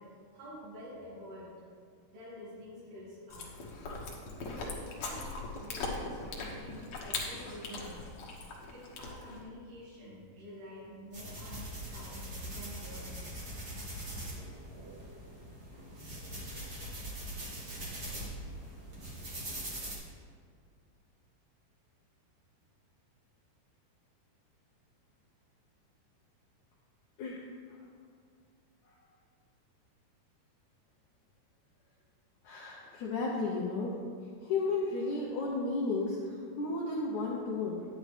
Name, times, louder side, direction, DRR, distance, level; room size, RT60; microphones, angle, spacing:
voice 1, 0.0-1.5 2.1-3.7 4.5-8.1 8.7-13.3, equal, 80° right, -8 dB, 4.1 m, -49 dB
Chewing mastication, 3.3-9.4, left 3 dB, 70° left, 1.7 m, -40 dB
sound 1, 11.1-20.0, right 1 dB, 60° right, 1.0 m, -42 dB
voice 2, 32.4-34.0 34.4-37.9, left 3 dB, 85° left, -4 dB, 1.7 m, -33 dB
9.9 x 9.9 x 3.3 m, 2.1 s
omnidirectional pair, 4.7 m